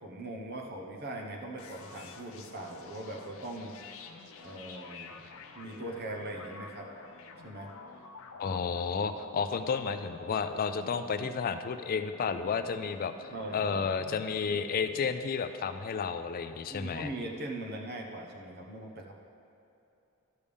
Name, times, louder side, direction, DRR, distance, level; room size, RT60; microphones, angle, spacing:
voice 1, 0.0-3.7 4.4-5.2 5.5-6.9 7.4-7.7 11.2-11.6 13.3-13.7 16.7-19.1, right 1 dB, 50° right, 1 dB, 1.0 m, -40 dB
sound 1, 1.6-15.2, left 4 dB, 70° left, 0.7 m, -50 dB
voice 2, 8.4-13.1 13.5-17.1, left 5 dB, 45° left, 9 dB, 0.3 m, -32 dB
12.5 x 6.8 x 3.6 m, 2.8 s
head